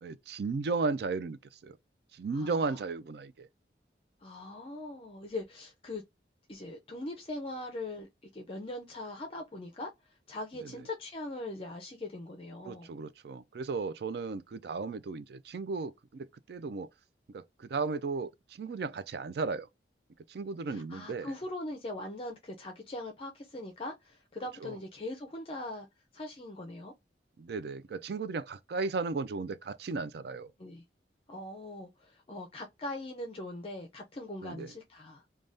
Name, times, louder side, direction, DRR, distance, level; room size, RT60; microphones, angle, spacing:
voice 1, 0.0-1.8 2.1-3.5 10.6-10.7 12.6-16.9 17.3-19.7 20.3-21.3 24.6-24.7 27.4-30.5 34.4-34.7, right 4 dB, 60° right, 0.4 m, -35 dB
voice 2, 2.3-2.7 4.2-6.0 6.5-8.1 8.3-12.9 20.7-25.9 26.1-26.9 30.6-30.8 31.3-35.2, left 2 dB, 30° left, 0.5 m, -41 dB
3.4 x 2.2 x 2.5 m
head